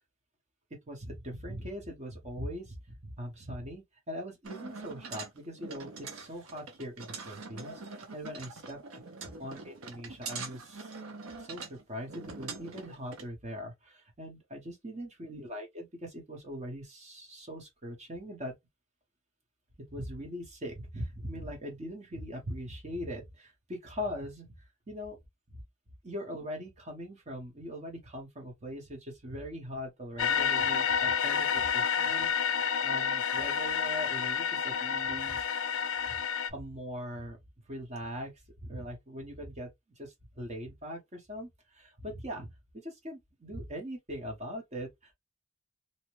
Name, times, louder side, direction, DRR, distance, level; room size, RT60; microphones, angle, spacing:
voice 1, 0.9-9.0 9.4-11.0 11.4-18.5 19.9-25.2 25.5-25.6 26.0-35.7 36.1-36.2 36.5-37.4 37.7-38.3 38.6-39.7 40.0-42.5 42.8-45.1, equal, 35° right, 0.9 m, -41 dB
sound 1, 4.4-13.2, right 4 dB, 80° right, 0.7 m, -44 dB
sound 2, 30.2-36.5, left 7 dB, 70° left, 0.4 m, -29 dB
2.7 x 2.1 x 2.9 m
head